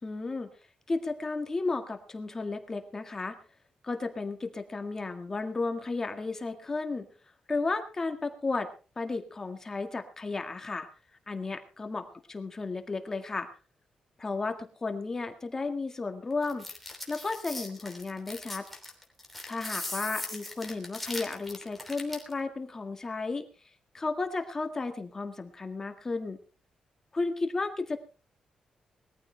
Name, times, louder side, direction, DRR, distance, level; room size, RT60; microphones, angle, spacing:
voice 1, 0.0-0.5 0.9-3.4 3.8-7.1 7.5-8.7 8.9-10.9 11.3-13.5 14.2-16.6 17.1-18.6 19.5-23.5 23.9-26.4 27.1-28.0, left 3 dB, 25° left, 5 dB, 1.8 m, -33 dB
sound 1, 16.4-22.3, left 2 dB, 5° left, 3.2 m, -39 dB
21.0 x 14.5 x 3.4 m, 0.36 s
wide cardioid pair, 155°, 2 cm